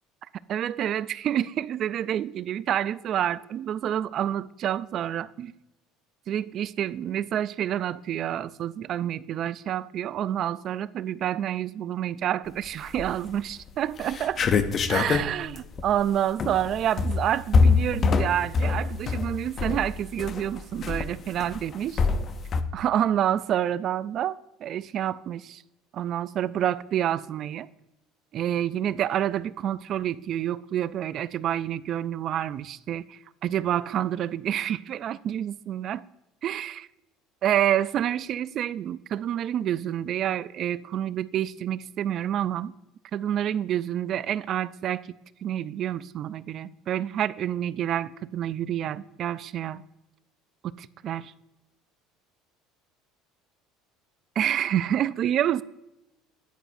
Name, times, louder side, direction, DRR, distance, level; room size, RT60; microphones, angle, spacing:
voice 1, 0.5-5.5 6.3-14.4 14.9-22.0 22.7-25.6 25.9-27.7 28.3-36.0 36.4-36.9 37.4-42.7 43.1-45.1 45.4-49.8 50.6-51.3 54.4-55.6, right 10 dB, 45° right, 0.3 m, -28 dB
sound 1, 12.8-13.3 13.7-13.8 14.0-22.6, left 4 dB, 35° left, 0.6 m, -25 dB
10.0 x 8.9 x 2.6 m
cardioid pair, 135°, 0 cm